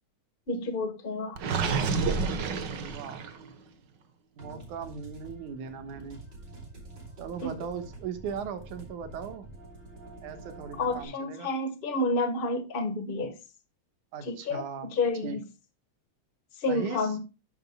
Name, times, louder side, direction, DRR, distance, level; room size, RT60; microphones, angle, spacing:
voice 1, 0.5-1.4 7.4-7.5 10.8-13.4 14.2-15.4 16.6-17.2, left 2 dB, 40° left, 0.7 m, -30 dB
Gurgling, 1.4-3.5, right 4 dB, 60° right, 1.2 m, -29 dB
voice 2, 2.1-3.2 4.3-6.3 7.2-9.5 10.2-11.5 14.1-14.9 15.2-15.4 16.7-17.2, right 6 dB, 80° right, 2.8 m, -38 dB
sound 1, 4.4-11.0, right 2 dB, 35° right, 3.1 m, -47 dB
12.5 x 8.0 x 2.2 m
omnidirectional pair, 3.5 m